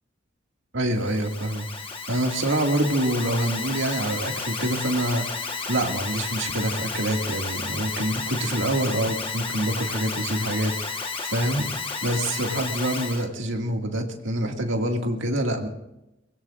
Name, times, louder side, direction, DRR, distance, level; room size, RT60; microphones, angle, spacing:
voice 1, 0.7-1.7 2.1-5.3 5.7-11.7 12.0-15.7, right 1 dB, 70° right, 2 dB, 2.2 m, -26 dB
Alarm, 0.9-13.3, left 4 dB, 25° left, 1.4 m, -32 dB
24.0 x 21.5 x 2.6 m, 0.91 s
head